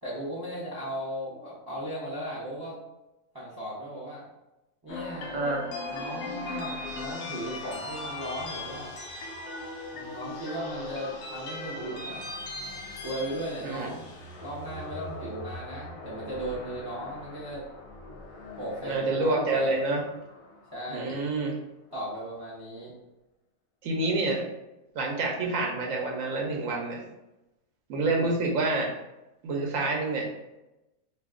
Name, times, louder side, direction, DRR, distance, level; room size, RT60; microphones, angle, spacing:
voice 1, 0.0-2.7 3.3-4.2 4.8-5.4 5.9-8.9 9.9-12.2 13.0-14.1 14.4-17.6 18.6-19.7 20.7-21.2 21.9-22.9 28.0-28.4, right 1 dB, 25° right, -8 dB, 0.5 m, -36 dB
sound 1, 4.9-21.1, left 2 dB, 70° left, 0.8 m, -39 dB
voice 2, 5.3-5.6 13.6-13.9 18.8-20.0 20.9-21.5 23.8-24.5 24.9-27.0 27.9-28.9 29.4-30.3, right 2 dB, 65° right, 0 dB, 0.9 m, -27 dB
2.5 x 2.3 x 3.5 m, 0.97 s
omnidirectional pair, 1.6 m